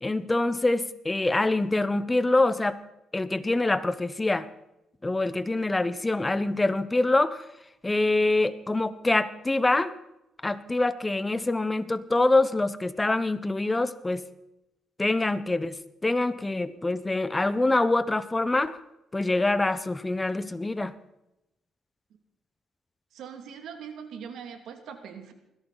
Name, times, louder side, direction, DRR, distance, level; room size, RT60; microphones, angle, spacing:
voice 1, 0.0-2.8 3.1-4.5 5.0-7.4 7.8-9.9 10.4-14.3 15.0-15.7 16.0-18.8 19.1-20.9, left 2 dB, 15° left, 14 dB, 1.1 m, -25 dB
voice 2, 23.1-25.3, right 7 dB, 75° right, 6 dB, 2.6 m, -41 dB
21.0 x 16.5 x 4.2 m, 0.88 s
cardioid pair, 90°, 0 cm